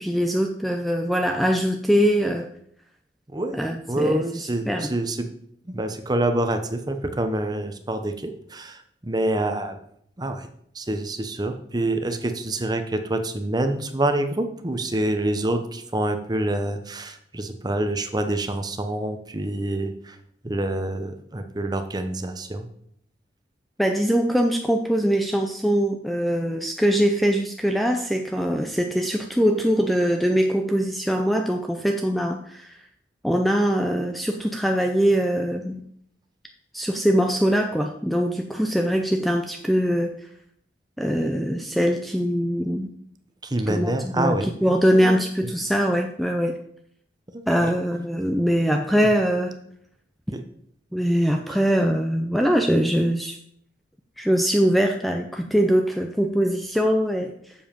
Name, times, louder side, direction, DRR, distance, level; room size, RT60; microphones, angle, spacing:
voice 1, 0.0-2.5 3.5-4.2 4.7-4.9 23.8-32.8 33.2-35.9 36.7-40.2 41.0-42.9 43.7-46.6 47.5-49.6 50.9-53.4 54.2-57.5, equal, ahead, 4 dB, 0.4 m, -22 dB
voice 2, 3.3-5.3 5.6-9.8 10.2-10.5 10.7-20.2 20.4-22.7 43.4-45.2 47.3-47.8 50.3-50.4, right 1 dB, 25° right, 7 dB, 0.8 m, -27 dB
7.5 x 7.2 x 5.2 m, 0.69 s
head